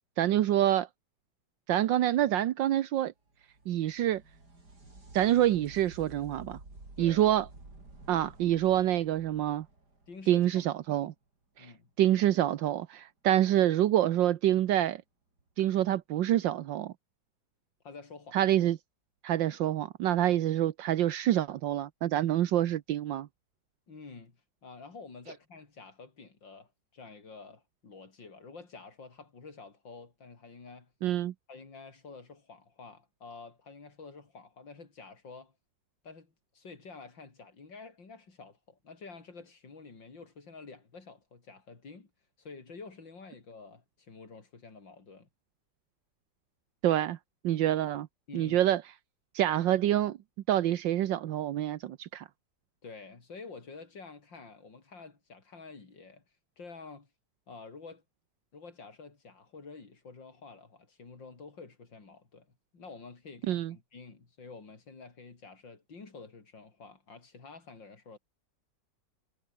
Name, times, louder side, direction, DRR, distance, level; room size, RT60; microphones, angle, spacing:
voice 1, 0.2-0.9 1.7-3.1 3.7-4.2 5.1-6.6 7.0-7.4 8.1-9.7 10.3-11.1 11.6-11.7 12.0-15.0 15.6-16.9 18.3-18.8 19.2-23.3 31.0-31.3 46.8-47.2 47.4-48.1 48.3-48.8 49.3-50.2 50.5-52.2 63.5-63.7, right 12 dB, 80° right, 1.6 m, -26 dB
sound 1, 3.3-10.9 14.3-14.4 15.4-15.5, right 2 dB, 60° right, 6.6 m, -52 dB
voice 2, 7.0-7.3 10.1-10.6 11.6-11.9 17.8-18.4 23.9-30.9 31.5-35.5 36.0-42.1 42.4-45.3 48.3-48.6 52.8-56.2 56.6-57.1 57.5-58.0 58.5-62.5 62.7-68.2, left 4 dB, 80° left, 4.6 m, -49 dB
omnidirectional pair, 2.0 m